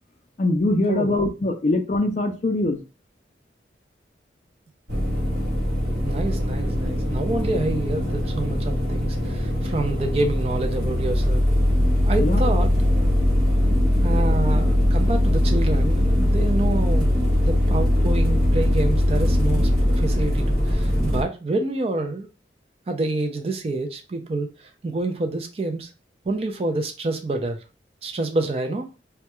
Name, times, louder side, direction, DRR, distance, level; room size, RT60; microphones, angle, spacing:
voice 1, 0.4-2.8 12.2-12.4, left 2 dB, 40° left, 0.3 m, -22 dB
sound 1, 4.9-21.2, left 1 dB, 55° right, 0.8 m, -21 dB
voice 2, 6.0-11.4 12.1-13.2 14.0-17.1 17.4-22.3 22.9-25.9 26.3-27.6 28.0-28.9, right 2 dB, 35° right, 0.4 m, -28 dB
2.2 x 2.2 x 2.9 m
head